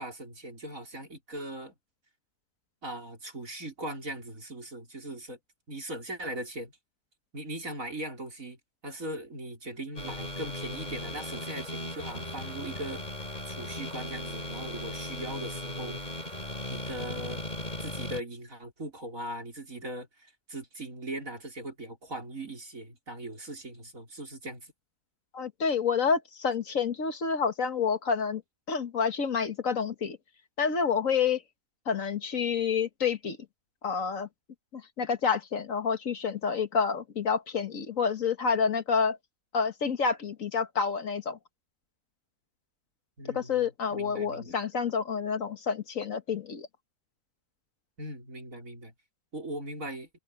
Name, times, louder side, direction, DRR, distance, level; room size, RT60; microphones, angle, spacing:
voice 1, 0.0-1.7 2.8-5.4 5.7-6.7 7.3-8.6 8.8-13.0 13.5-16.0 16.7-17.4 17.8-24.7 43.2-44.6 48.0-48.9 49.3-50.1, right 1 dB, 65° right, 5.4 m, -39 dB
sound 1, 10.0-18.2, left 1 dB, 30° left, 3.5 m, -37 dB
voice 2, 25.3-28.4 28.7-30.2 30.6-31.4 31.9-33.4 33.8-34.3 34.7-39.2 39.5-41.4 43.3-46.7, left 6 dB, 65° left, 1.8 m, -28 dB
omnidirectional pair, 1.5 m